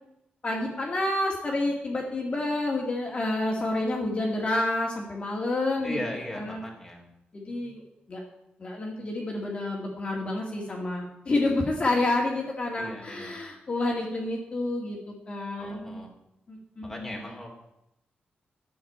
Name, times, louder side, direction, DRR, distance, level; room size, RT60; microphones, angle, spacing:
voice 1, 0.4-6.0 6.3-6.6 7.3-7.8 8.1-8.2 8.6-15.0 15.3-16.0 16.5-17.1, left 2 dB, 30° left, -1 dB, 1.9 m, -29 dB
voice 2, 5.8-7.1 12.8-13.4 15.6-16.1 16.8-17.5, left 1 dB, 5° left, -1 dB, 2.8 m, -38 dB
12.0 x 6.5 x 8.6 m, 0.85 s
wide cardioid pair, 155°, 4 cm